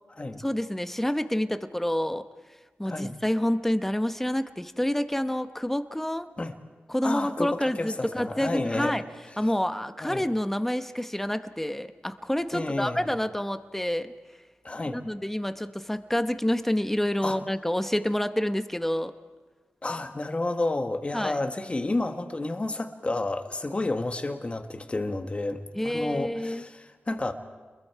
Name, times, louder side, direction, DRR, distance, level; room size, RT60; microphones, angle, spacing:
voice 1, 0.4-2.3 2.8-6.3 6.9-9.0 9.4-14.1 14.9-19.1 21.1-21.4 25.7-26.7, left 1 dB, 5° left, 9 dB, 0.9 m, -28 dB
voice 2, 7.0-8.9 10.0-10.3 12.5-13.0 14.6-15.0 17.2-17.4 19.8-27.3, left 2 dB, 30° left, 6 dB, 1.4 m, -30 dB
28.5 x 22.0 x 4.7 m, 1.3 s
cardioid pair, 70°, 4 cm